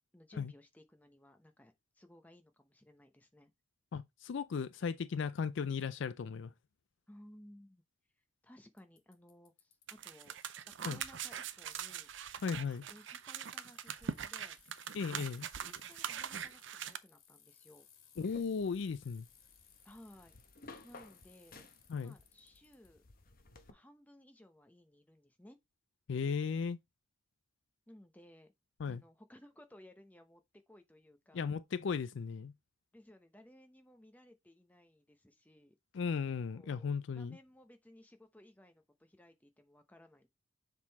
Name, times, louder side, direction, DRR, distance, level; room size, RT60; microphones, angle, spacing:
voice 1, 0.1-3.5 7.1-7.8 8.4-10.3 10.8-12.1 12.9-14.6 15.4-17.9 19.8-20.4 20.8-21.7 22.0-23.0 23.7-25.6 27.9-28.5 28.9-30.4 30.7-31.5 32.9-35.7 36.5-40.3, left 1 dB, 5° left, 0.9 m, -59 dB
voice 2, 3.9-6.5 10.8-11.0 12.4-12.9 14.9-15.5 18.2-19.3 21.9-22.1 26.1-26.8 28.8-29.0 31.3-32.5 35.9-37.4, left 5 dB, 60° left, 0.4 m, -36 dB
Bicycle, 8.8-22.9, left 8 dB, 85° left, 1.7 m, -64 dB
sound 1, 9.9-17.0, right 8 dB, 60° right, 0.5 m, -42 dB
sound 2, 18.2-23.7, left 3 dB, 45° left, 1.0 m, -57 dB
7.3 x 3.9 x 4.1 m
head